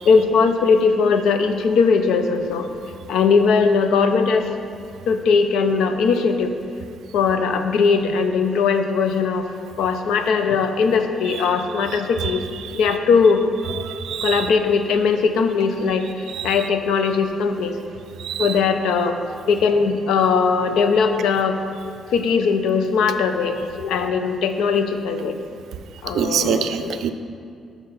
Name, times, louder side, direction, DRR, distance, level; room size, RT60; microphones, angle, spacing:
voice 1, 0.1-2.7 3.1-4.5 5.1-6.5 7.1-9.5 9.8-12.4 12.7-13.4 14.2-17.8 18.4-19.2 19.5-21.6 22.1-25.4 26.0-27.0, left 5 dB, 80° left, 7 dB, 0.5 m, -19 dB
voice 2, 13.8-14.5 16.3-16.5 18.2-18.6 26.1-27.1, right 8 dB, 75° right, 9 dB, 0.4 m, -25 dB
6.6 x 5.8 x 3.9 m, 2.4 s
cardioid pair, 90°, 0 cm